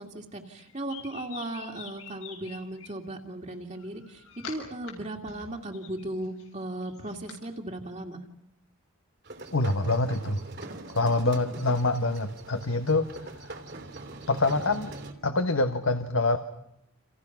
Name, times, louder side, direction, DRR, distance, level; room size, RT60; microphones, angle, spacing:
voice 1, 0.0-8.2 11.3-11.6, right 1 dB, 35° right, 1 dB, 2.4 m, -37 dB
sound 1, 0.6-2.9 3.7-4.9 5.2-7.4, left 7 dB, 85° left, 7.2 m, -45 dB
sound 2, 9.2-15.1, right 2 dB, 50° right, 3.0 m, -43 dB
voice 2, 9.5-10.4 10.9-13.6 14.3-14.9 15.2-16.4, left 2 dB, 70° left, 7 dB, 1.4 m, -26 dB
29.5 x 29.0 x 6.0 m, 0.78 s
head